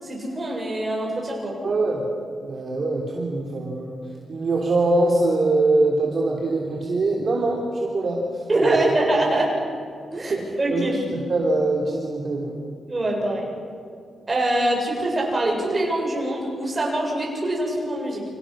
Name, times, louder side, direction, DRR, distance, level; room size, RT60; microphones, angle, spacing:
voice 1, 0.0-1.6 8.5-9.6 10.1-10.9 12.9-13.5 14.3-18.2, right 1 dB, 20° right, -1 dB, 7.4 m, -24 dB
voice 2, 1.6-2.1 2.4-4.0 4.3-8.3 8.6-8.8 10.1-12.6, right 2 dB, 40° right, -1 dB, 3.2 m, -23 dB
29.5 x 27.5 x 6.5 m, 2.3 s
wide cardioid pair, 170°, 0 cm